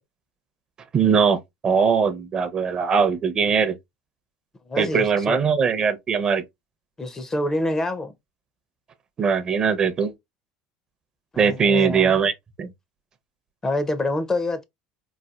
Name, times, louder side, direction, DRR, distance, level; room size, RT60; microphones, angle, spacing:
voice 1, 0.9-3.7 4.8-6.4 9.2-10.1 11.4-12.3 12.6-12.7, right 6 dB, 30° right, 0.6 m, -20 dB
voice 2, 4.7-5.4 7.0-8.1 11.3-12.2 13.6-14.6, left 2 dB, 20° left, 0.5 m, -26 dB
4.0 x 2.4 x 2.3 m
supercardioid pair, 115°, 3 cm